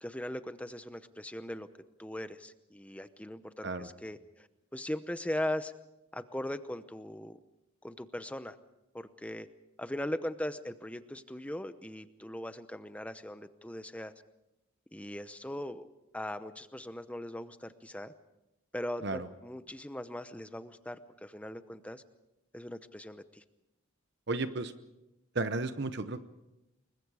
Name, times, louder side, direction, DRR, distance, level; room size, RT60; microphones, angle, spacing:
voice 1, 0.0-1.7 2.0-5.7 6.1-7.4 7.8-8.6 8.9-9.5 9.8-14.1 14.9-15.9 16.1-18.1 18.7-22.0 22.5-23.4, left 1 dB, 5° left, 11 dB, 0.8 m, -39 dB
voice 2, 24.3-24.7 25.3-26.2, right 3 dB, 50° right, 11 dB, 0.9 m, -33 dB
28.5 x 22.0 x 4.9 m, 0.94 s
head